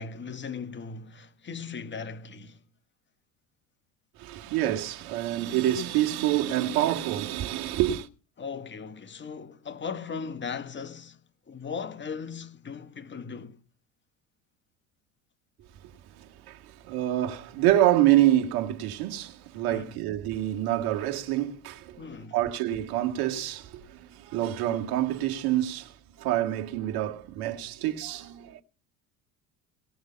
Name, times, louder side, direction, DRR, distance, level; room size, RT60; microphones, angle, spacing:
voice 1, 0.0-2.6 8.4-11.2 11.5-13.6 19.6-20.0 22.0-22.4, left 5 dB, 25° left, 1.5 m, -38 dB
voice 2, 4.2-8.1 16.2-22.0 22.3-28.6, right 13 dB, 55° right, 2.0 m, -27 dB
17.5 x 6.6 x 7.1 m
figure-of-eight pair, 65°, 43 cm